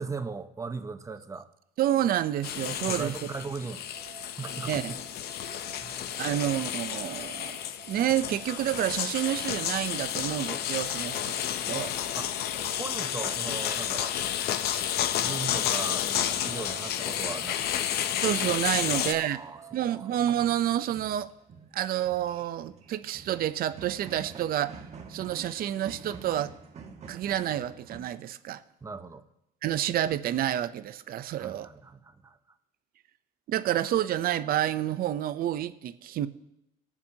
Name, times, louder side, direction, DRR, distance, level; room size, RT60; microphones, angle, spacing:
voice 1, 0.0-1.5 2.9-3.9 4.4-5.0 5.8-6.3 12.1-12.3 12.8-14.2 15.2-17.9 18.9-19.6 19.9-20.1 28.8-29.2 31.4-32.4, right 4 dB, 20° right, 0.7 m, -38 dB
voice 2, 1.8-3.1 4.7-4.9 6.2-7.6 7.9-11.9 18.2-19.4 19.7-21.3 21.7-24.8 25.1-26.5 27.1-28.6 29.6-31.7 33.5-36.3, right 12 dB, 60° right, 0.6 m, -29 dB
sound 1, 2.4-19.1, left 10 dB, 70° left, 0.6 m, -31 dB
sound 2, 3.8-20.2, right 8 dB, 90° right, 1.5 m, -51 dB
sound 3, 20.3-28.0, right 5 dB, 40° right, 1.4 m, -47 dB
20.0 x 7.2 x 2.8 m
cardioid pair, 110°, 17 cm